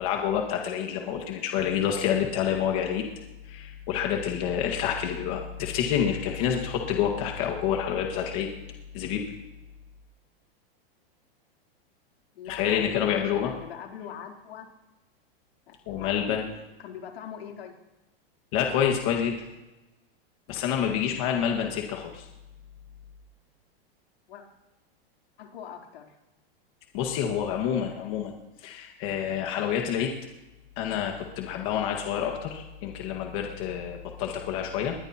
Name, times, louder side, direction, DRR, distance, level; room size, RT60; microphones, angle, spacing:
voice 1, 0.0-3.0 3.5-8.5 8.9-9.2 12.5-13.5 15.9-16.5 18.5-19.4 20.5-22.3 26.9-28.3 28.6-30.1 30.8-35.0, left 9 dB, 35° left, 2 dB, 1.8 m, -28 dB
voice 2, 12.3-14.7 15.7-16.4 16.8-17.7 24.3-24.4 25.4-26.1, left 8 dB, 75° left, 1 dB, 3.6 m, -42 dB
21.0 x 20.5 x 3.0 m, 1.0 s
supercardioid pair, 170°, 30 cm